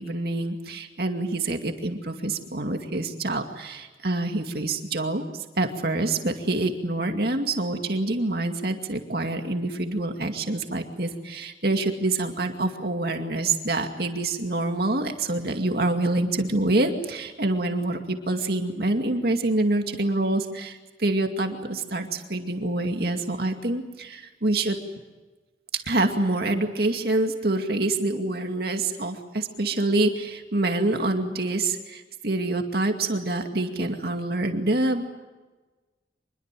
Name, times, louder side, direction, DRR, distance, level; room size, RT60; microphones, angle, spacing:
voice 1, 0.0-5.3 5.6-24.8 25.7-35.1, right 2 dB, 60° right, 4 dB, 2.3 m, -26 dB
26.0 x 22.0 x 7.6 m, 1.2 s
head